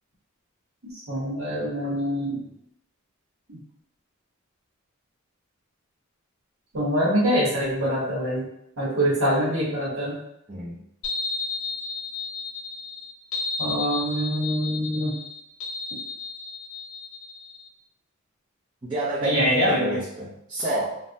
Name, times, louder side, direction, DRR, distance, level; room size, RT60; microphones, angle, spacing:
voice 1, 1.1-2.4 3.5-3.6 6.7-8.5 8.8-10.2 13.6-15.2 19.2-20.0, equal, 70° right, -8 dB, 1.0 m, -24 dB
sound 1, 11.0-17.7, left 3 dB, 80° left, 0.9 m, -33 dB
voice 2, 18.8-21.0, right 1 dB, 20° right, -10 dB, 0.6 m, -29 dB
3.3 x 2.0 x 2.7 m, 0.79 s
head